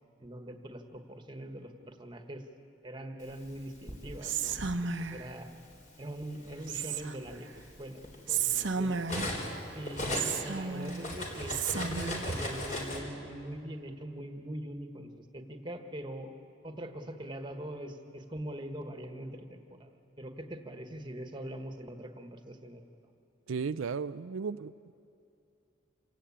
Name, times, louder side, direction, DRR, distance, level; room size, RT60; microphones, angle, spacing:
voice 1, 0.2-2.4 2.8-4.6 5.0-5.5 6.0-7.5 7.8-9.0 9.7-16.3 16.6-22.9, right 1 dB, 25° right, 6 dB, 1.5 m, -42 dB
Cutlery silverware, 3.5-4.7 5.7-5.9 6.3-9.6 9.8-13.0, left 1 dB, 40° left, 3.8 m, -37 dB
Whispering, 4.2-5.3 6.7-7.4 8.3-9.5 10.1-11.1 11.5-12.3, right 6 dB, 65° right, 0.9 m, -33 dB
voice 2, 23.5-24.9, right 5 dB, 85° right, 12 dB, 0.5 m, -35 dB
27.5 x 17.0 x 8.7 m, 2.6 s
head